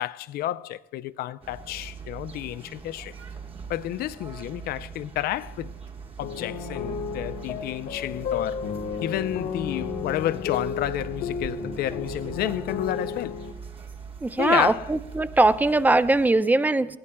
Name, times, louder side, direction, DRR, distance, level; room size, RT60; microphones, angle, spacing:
voice 1, 0.0-3.1 3.7-5.7 6.2-8.6 9.0-13.4 14.4-14.9, left 13 dB, 65° left, 0.4 m, -30 dB
sound 1, 1.4-16.3, right 5 dB, 35° right, 1.3 m, -42 dB
sound 2, 6.2-13.5, left 6 dB, 90° left, 1.2 m, -33 dB
voice 2, 14.2-17.0, right 2 dB, 10° right, 0.4 m, -21 dB
19.5 x 16.5 x 2.2 m
cardioid pair, 110°, 17 cm